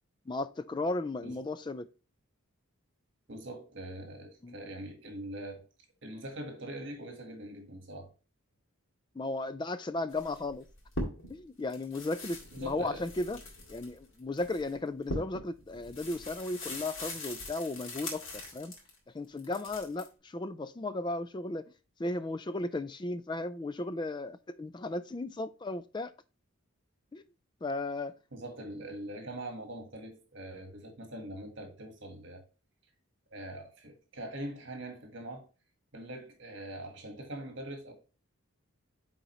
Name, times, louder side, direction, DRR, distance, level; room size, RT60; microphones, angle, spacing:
voice 1, 0.3-1.9 4.4-4.5 9.2-10.7 11.3-13.4 13.7-18.7 19.1-21.7 22.0-26.1 27.1-27.2 27.6-28.1, left 2 dB, 20° left, 0.3 m, -35 dB
voice 2, 3.3-5.6 6.0-8.1 12.5-13.0 28.3-32.4 33.3-35.5 35.9-37.9, right 1 dB, 55° right, 1.5 m, -43 dB
sound 1, 10.1-11.4 11.7-19.0 19.4-20.1, left 1 dB, 70° left, 2.0 m, -41 dB
8.8 x 3.9 x 3.0 m
head